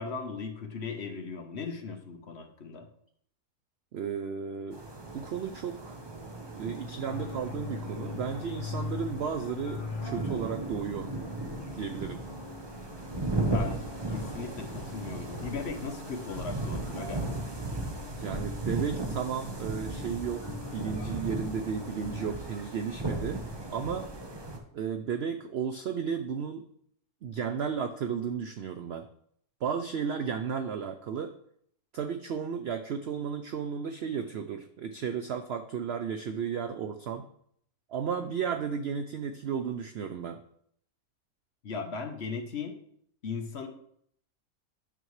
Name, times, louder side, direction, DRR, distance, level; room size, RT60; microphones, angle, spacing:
voice 1, 0.0-2.9 13.5-17.2 41.6-42.8 43.2-43.7, left 5 dB, 50° left, 5 dB, 0.9 m, -37 dB
voice 2, 3.9-4.8 5.1-6.0 6.5-11.1 11.7-12.2 18.2-23.4 23.7-24.1 24.7-26.6 27.2-29.1 29.6-31.4 31.9-37.3 37.9-40.4, right 7 dB, 85° right, 7 dB, 0.5 m, -34 dB
sound 1, 4.7-24.6, right 2 dB, 20° right, 0.8 m, -36 dB
sound 2, 7.0-22.4, left 3 dB, 75° left, 1.8 m, -43 dB
9.1 x 6.8 x 3.1 m, 0.67 s
omnidirectional pair, 1.7 m